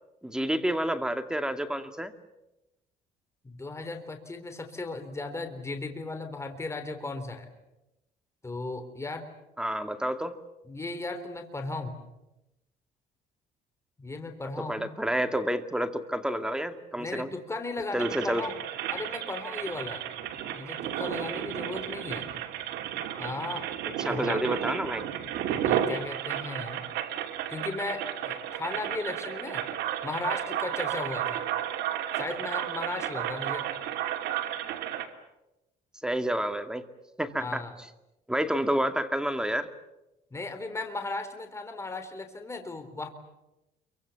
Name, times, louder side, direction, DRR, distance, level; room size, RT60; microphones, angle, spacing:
voice 1, 0.2-2.1 9.6-10.4 14.6-17.3 17.9-18.4 24.0-25.1 36.0-36.8 37.2-37.6 38.3-39.7, right 1 dB, 5° right, 7 dB, 2.2 m, -29 dB
voice 2, 3.4-7.5 8.4-9.3 10.7-12.0 14.0-14.9 17.0-18.5 18.9-20.1 20.5-22.3 23.2-23.7 24.0-24.4 25.6-26.8 27.5-29.7 30.0-31.4 32.2-33.7 37.4-37.8 40.3-43.1, left 2 dB, 15° left, 7 dB, 3.7 m, -36 dB
sound 1, 18.0-35.1, right 10 dB, 85° right, 2.9 m, -33 dB
28.5 x 24.5 x 7.1 m, 0.94 s
cardioid pair, 110°, 17 cm